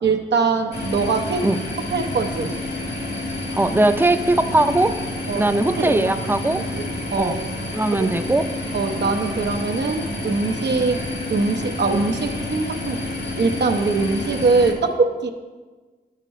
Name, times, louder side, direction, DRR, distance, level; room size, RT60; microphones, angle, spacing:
voice 1, 0.0-1.5 1.9-2.5 5.3-6.0 6.7-7.4 8.0-8.2 8.7-11.0 11.3-13.0 13.4-15.3, right 4 dB, 85° right, 3 dB, 0.7 m, -22 dB
sound 1, 0.7-14.7, left 1 dB, 75° left, 1.9 m, -29 dB
voice 2, 3.5-5.0 5.3-6.6 7.2-7.4 7.7-8.5, right 2 dB, 10° right, 9 dB, 0.5 m, -19 dB
12.0 x 5.1 x 4.3 m, 1.3 s
wide cardioid pair, 70°, 17 cm